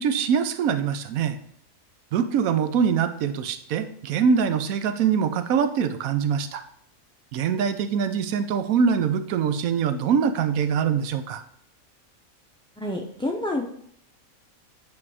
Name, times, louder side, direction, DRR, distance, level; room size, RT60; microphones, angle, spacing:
voice 1, 0.0-1.4 2.1-6.6 7.3-11.4, right 7 dB, 80° right, 11 dB, 1.1 m, -23 dB
voice 2, 12.8-13.6, left 1 dB, 5° left, 1 dB, 0.3 m, -28 dB
8.4 x 4.4 x 4.8 m, 0.67 s
omnidirectional pair, 1.5 m